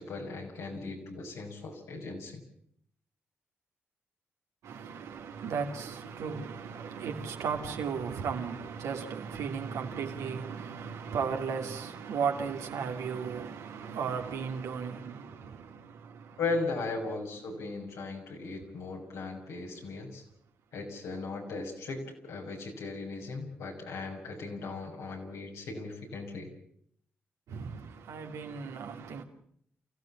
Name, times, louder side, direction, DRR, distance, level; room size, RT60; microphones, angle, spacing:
voice 1, 0.0-2.4 16.4-20.2 20.7-26.5, left 3 dB, 80° left, 6.3 m, -37 dB
voice 2, 4.6-16.4 27.5-29.2, right 6 dB, 80° right, 2.8 m, -35 dB
29.5 x 15.5 x 7.3 m
supercardioid pair, 45°, 5 cm